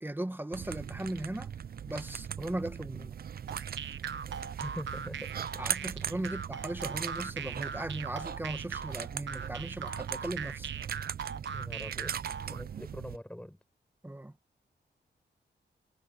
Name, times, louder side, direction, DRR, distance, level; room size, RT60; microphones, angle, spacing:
voice 1, 0.0-1.5 1.9-3.1 5.6-10.7 11.3-11.4 14.0-14.3, right 1 dB, 10° right, 1.5 m, -38 dB
sound 1, 0.5-13.2, right 8 dB, 55° right, 0.5 m, -40 dB
sound 2, 3.5-12.6, right 7 dB, 90° right, 1.1 m, -40 dB
voice 2, 4.6-5.5 6.2-6.4 11.5-12.2 12.5-13.6, left 1 dB, 5° left, 6.7 m, -43 dB
wide cardioid pair, 105°, 19 cm